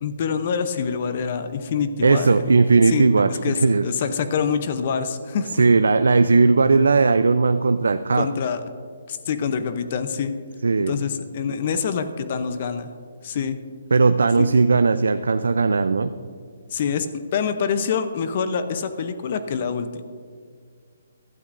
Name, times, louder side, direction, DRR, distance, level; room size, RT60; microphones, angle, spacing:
voice 1, 0.0-2.4 2.9-5.5 8.1-8.6 9.1-10.3 10.9-12.9 13.2-13.6 14.4-14.5 16.7-17.1 17.3-20.0, left 6 dB, 40° left, 9 dB, 0.6 m, -26 dB
voice 2, 2.0-3.8 5.5-8.3 10.6-10.9 13.9-16.1, right 4 dB, 90° right, 10 dB, 0.4 m, -17 dB
16.0 x 12.0 x 2.6 m, 2.1 s
hypercardioid pair, 160°, 0 cm